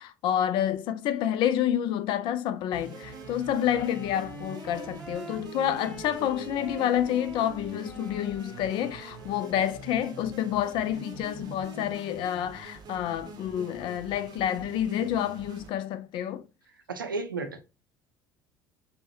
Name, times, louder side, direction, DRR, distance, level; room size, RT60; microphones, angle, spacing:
voice 1, 0.0-16.4, left 10 dB, 50° left, 0.4 m, -28 dB
sound 1, 2.7-15.7, right 3 dB, 40° right, 0.7 m, -45 dB
Wind instrument woodwind instrument, 2.9-10.1, right 2 dB, 20° left, 1.4 m, -45 dB
voice 2, 16.9-17.8, right 3 dB, 85° right, 0.5 m, -34 dB
5.2 x 2.1 x 2.7 m
figure-of-eight pair, 60°, 11 cm